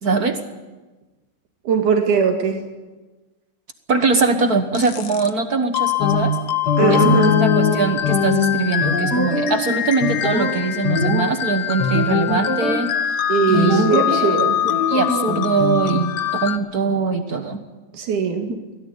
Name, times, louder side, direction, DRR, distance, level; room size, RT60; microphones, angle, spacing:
voice 1, 0.0-0.4 3.9-6.4 6.9-12.9 13.5-13.8 14.1-17.6, right 4 dB, 50° right, 7 dB, 1.1 m, -22 dB
voice 2, 1.7-2.6 6.8-7.4 13.3-14.6 17.9-18.5, right 6 dB, 90° right, 3 dB, 3.7 m, -20 dB
sound 1, 4.7-5.3 5.7-16.6, left 11 dB, 60° left, 1.3 m, -25 dB
sound 2, 6.0-6.3 6.7-9.7 10.0-10.6 10.8-11.3 11.8-12.8 13.5-14.4 14.7-15.8, left 4 dB, 35° left, 3.0 m, -21 dB
23.5 x 17.0 x 9.0 m, 1.2 s
omnidirectional pair, 3.4 m